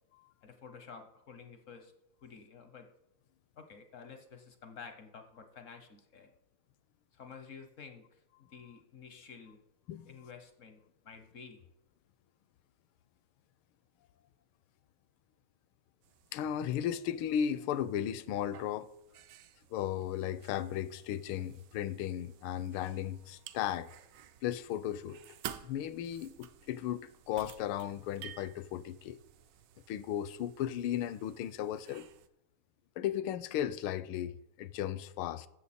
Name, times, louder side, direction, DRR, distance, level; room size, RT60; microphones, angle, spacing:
voice 1, 0.4-1.9 2.2-2.9 3.6-6.3 7.1-9.6 10.1-11.7, left 6 dB, 65° left, 0.8 m, -51 dB
sound 1, 16.0-32.3, right 10 dB, 70° right, 1.1 m, -53 dB
voice 2, 16.3-18.9 19.7-23.9 24.4-25.2 25.6-29.2 29.9-32.1 33.0-35.5, left 10 dB, 80° left, 1.4 m, -35 dB
15.5 x 6.8 x 4.2 m
omnidirectional pair, 2.4 m